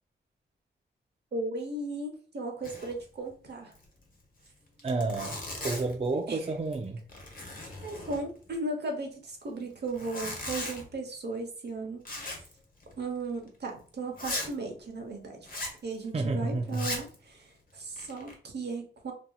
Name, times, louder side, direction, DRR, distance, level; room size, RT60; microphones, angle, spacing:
voice 1, 1.3-3.7 6.3-6.4 7.8-12.4 13.0-15.5 15.8-19.1, right 2 dB, 55° right, 0.9 m, -36 dB
Zipper (clothing), 2.6-3.0 3.3-3.4 3.7-3.8 4.5-4.6 4.8-6.1 6.6-6.8 7.1-8.5 9.9-10.9 12.0-12.5 12.8-13.0 13.5-13.6 14.2-14.5 15.5-15.8 16.7-17.1 17.7-18.3, left 2 dB, 45° left, 1.1 m, -38 dB
voice 2, 4.8-7.0 16.1-16.9, right 3 dB, 30° right, 0.4 m, -30 dB
2.8 x 2.7 x 2.3 m
cardioid pair, 50°, 20 cm